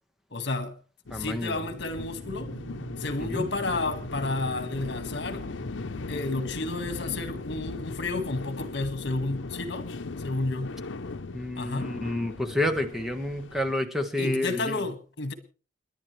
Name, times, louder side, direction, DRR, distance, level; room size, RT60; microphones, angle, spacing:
voice 1, 0.3-0.7 1.1-2.5 3.0-5.4 6.1-9.9 10.2-10.8 11.6-11.9 14.2-15.3, left 2 dB, 65° left, 1.9 m, -31 dB
sound 1, 1.1-13.7, left 3 dB, 85° left, 0.8 m, -38 dB
voice 2, 1.1-1.6 3.2-3.4 11.3-14.8, left 1 dB, ahead, 1.4 m, -29 dB
Guitar, 2.2-7.5, right 2 dB, 75° right, 3.0 m, -45 dB
30.0 x 11.0 x 3.3 m
head